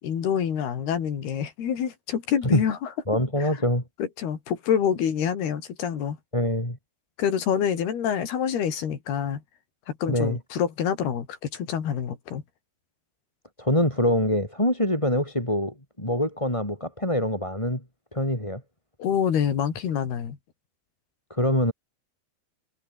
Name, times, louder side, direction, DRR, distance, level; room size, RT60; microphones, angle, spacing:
voice 1, 0.0-2.9 3.4-3.5 4.0-6.2 7.2-9.4 9.9-12.4 19.0-20.4, left 8 dB, 75° left, 5.1 m, -27 dB
voice 2, 3.1-3.8 6.3-6.8 10.1-10.4 13.6-17.8 18.1-18.6 21.3-21.7, left 1 dB, 5° left, 5.5 m, -24 dB
omnidirectional pair, 4.6 m